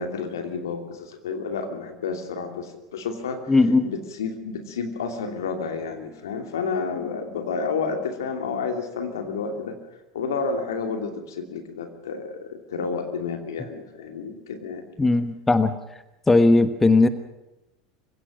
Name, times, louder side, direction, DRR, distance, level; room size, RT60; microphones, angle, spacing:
voice 1, 0.0-3.6 3.8-9.8 10.1-14.9, left 5 dB, 75° left, 5 dB, 2.7 m, -30 dB
voice 2, 3.5-3.9 15.0-15.8 16.3-17.1, left 3 dB, 15° left, 11 dB, 1.3 m, -18 dB
25.5 x 16.5 x 6.4 m, 0.97 s
figure-of-eight pair, 80°, 2 cm